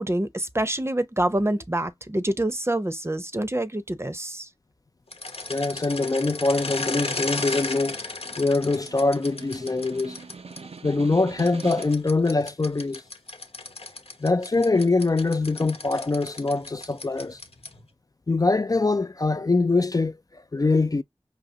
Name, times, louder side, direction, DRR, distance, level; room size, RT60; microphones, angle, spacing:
voice 1, 0.0-4.5, right 1 dB, 25° right, 0.6 m, -26 dB
sound 1, 5.1-10.6 11.4-17.9, left 3 dB, 80° left, 0.9 m, -35 dB
voice 2, 5.5-8.0 8.4-10.2 10.8-13.0 14.2-17.4 18.3-21.0, left 3 dB, 35° left, 0.3 m, -23 dB
Snare drum, 7.7-12.2, right 4 dB, 85° right, 0.5 m, -43 dB
5.0 x 2.8 x 2.6 m
wide cardioid pair, 40°, 10 cm